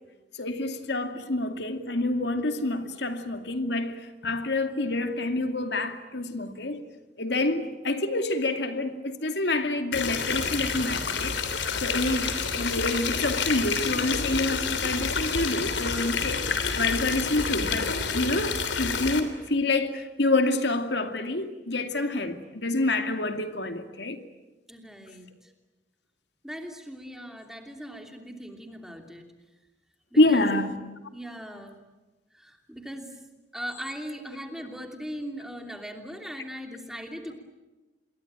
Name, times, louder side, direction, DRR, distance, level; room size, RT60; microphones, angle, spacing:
voice 1, 0.4-6.8 7.2-11.3 11.8-24.2 30.2-30.7, left 2 dB, 70° left, 2.4 m, -27 dB
sound 1, 9.9-19.2, left 5 dB, 85° left, 3.2 m, -28 dB
voice 2, 24.7-25.5 26.4-29.2 30.1-30.4 30.7-30.8 31.1-31.8 32.3-33.1 33.5-37.4, equal, 5° right, 2.9 m, -39 dB
27.0 x 22.0 x 9.0 m
head